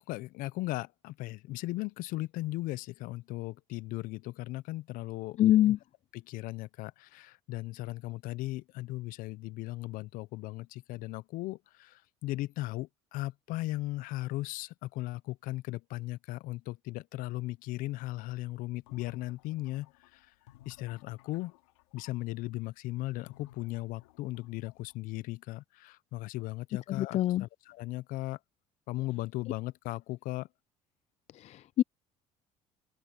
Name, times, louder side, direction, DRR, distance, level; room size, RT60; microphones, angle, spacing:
voice 1, 0.0-5.4 5.7-5.8 6.1-20.3 20.7-21.5 21.9-28.4 28.9-30.5, left 18 dB, 70° left, 0.8 m, -37 dB
voice 2, 5.4-5.8 27.0-27.4 31.4-31.8, left 13 dB, 50° left, 0.4 m, -24 dB
sound 1, 18.6-22.2 23.3-25.0, left 18 dB, 85° left, 3.3 m, -59 dB
open air
hypercardioid pair, 70°, 15 cm